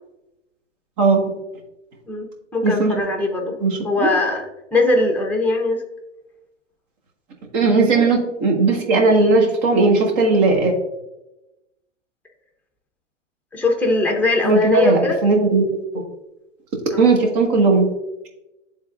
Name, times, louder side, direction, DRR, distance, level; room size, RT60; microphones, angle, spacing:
voice 1, 1.0-1.3 2.6-2.9 3.6-4.1 7.5-10.7 14.4-15.6 17.0-17.9, right 3 dB, 40° right, 1 dB, 1.6 m, -17 dB
voice 2, 2.1-3.6 3.8-4.4 4.7-5.8 13.5-15.2 16.9-17.1, left 2 dB, 5° left, 1 dB, 0.9 m, -20 dB
11.0 x 3.7 x 2.5 m, 0.94 s
hypercardioid pair, 115°, 37 cm